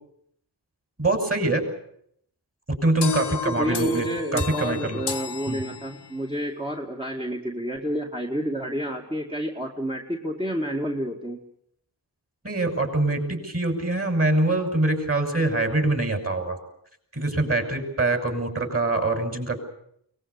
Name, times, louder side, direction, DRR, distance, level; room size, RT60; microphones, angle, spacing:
voice 1, 1.0-1.6 2.7-5.0 5.5-5.6 12.4-16.6 17.1-19.6, right 2 dB, 35° right, 5 dB, 6.2 m, -24 dB
sound 1, 3.0-6.3, left 5 dB, 75° left, 1.6 m, -32 dB
voice 2, 3.4-11.4, equal, 15° right, 0 dB, 2.2 m, -29 dB
23.0 x 19.5 x 8.3 m, 0.69 s
cardioid pair, 45°, 41 cm